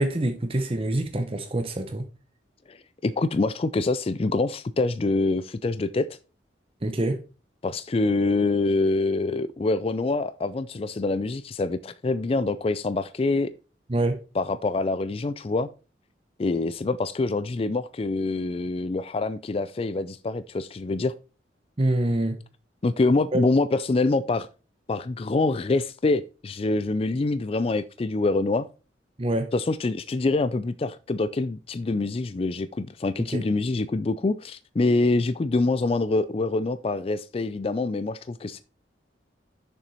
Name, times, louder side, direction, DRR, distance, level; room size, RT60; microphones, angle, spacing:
voice 1, 0.0-2.1 6.8-7.2 13.9-14.2 21.8-22.4 23.3-23.4 29.2-29.5 33.3-33.4, right 1 dB, 30° right, 0.8 m, -25 dB
voice 2, 3.0-6.1 7.6-13.5 14.4-15.7 16.4-21.1 22.8-24.5 24.9-28.7 29.5-38.6, left 3 dB, 30° left, 0.4 m, -25 dB
6.8 x 6.1 x 4.1 m
head